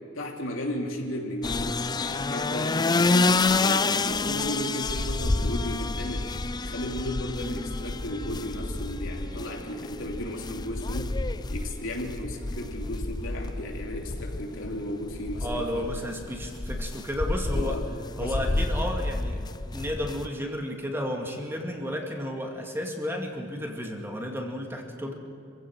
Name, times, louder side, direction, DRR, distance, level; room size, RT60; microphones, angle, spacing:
voice 1, 0.1-11.2 11.5-15.9 17.5-17.8 18.2-18.4, left 1 dB, 90° left, 0 dB, 3.2 m, -35 dB
sound 1, 1.4-20.3, left 3 dB, 20° left, 0.5 m, -29 dB
voice 2, 15.4-17.8 18.2-25.1, left 1 dB, 10° right, 1 dB, 2.3 m, -32 dB
26.5 x 16.0 x 6.3 m, 2.7 s
head